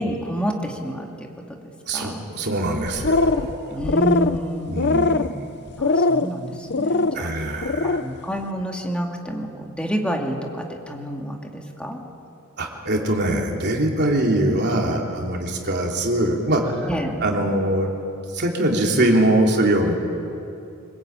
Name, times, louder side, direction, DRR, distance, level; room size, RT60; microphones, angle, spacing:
voice 1, 0.0-1.6 1.9-2.2 3.7-4.8 5.8-12.0 16.9-17.2, equal, 5° left, 1 dB, 2.4 m, -29 dB
voice 2, 1.9-3.8 4.7-5.4 7.1-8.0 12.6-16.9 17.2-17.9 18.3-19.9, right 1 dB, 50° right, 0 dB, 3.3 m, -22 dB
sound 1, 2.9-3.5 3.8-4.4 4.8-5.3 5.8-6.3 6.7-7.2 7.6-8.0, left 3 dB, 50° left, 0.7 m, -20 dB
24.0 x 20.5 x 8.9 m, 2.7 s
head